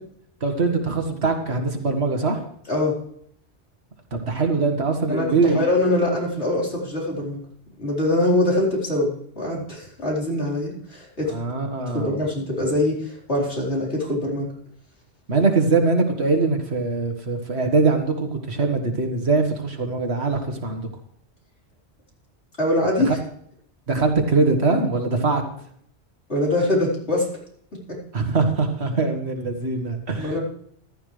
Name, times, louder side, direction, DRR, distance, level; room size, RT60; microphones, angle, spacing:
voice 1, 0.4-2.4 4.1-5.6 11.3-12.2 15.3-20.9 23.1-23.2 23.9-25.4 28.1-30.4, right 3 dB, 70° right, 4 dB, 2.0 m, -22 dB
voice 2, 5.1-7.4 7.8-11.4 11.8-14.5 22.6-23.2 26.3-27.3 27.9-28.0 30.2-30.4, left 1 dB, 75° left, -4 dB, 4.8 m, -23 dB
14.5 x 12.5 x 3.3 m, 0.66 s
omnidirectional pair, 1.1 m